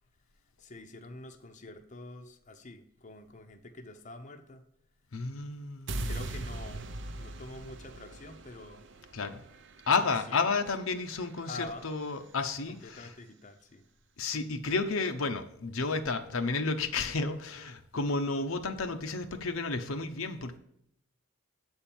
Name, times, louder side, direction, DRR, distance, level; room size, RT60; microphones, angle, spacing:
voice 1, 0.6-4.6 6.0-6.9 7.2-8.9 10.0-10.5 11.4-11.9 12.7-13.8, left 2 dB, 35° left, 0.7 m, -46 dB
voice 2, 5.1-6.1 9.1-9.4 9.9-13.1 14.2-20.6, left 4 dB, 75° left, 0.7 m, -31 dB
sound 1, 5.9-12.0, right 2 dB, 55° right, 0.6 m, -41 dB
7.9 x 4.4 x 7.0 m
head